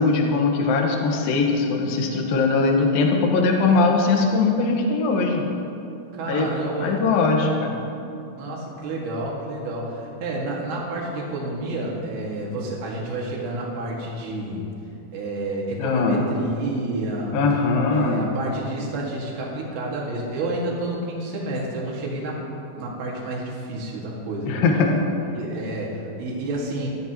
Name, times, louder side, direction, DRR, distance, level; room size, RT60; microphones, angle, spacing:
voice 1, 0.0-5.5 6.3-6.5 6.8-7.7 15.8-16.2 17.3-18.2 24.5-24.9, left 3 dB, 70° left, 1 dB, 3.0 m, -20 dB
voice 2, 6.1-7.1 8.4-14.6 15.1-17.4 17.9-22.4 22.8-24.6 25.4-26.9, right 2 dB, 75° right, -3 dB, 3.9 m, -29 dB
22.5 x 13.5 x 3.0 m, 2.7 s
omnidirectional pair, 4.5 m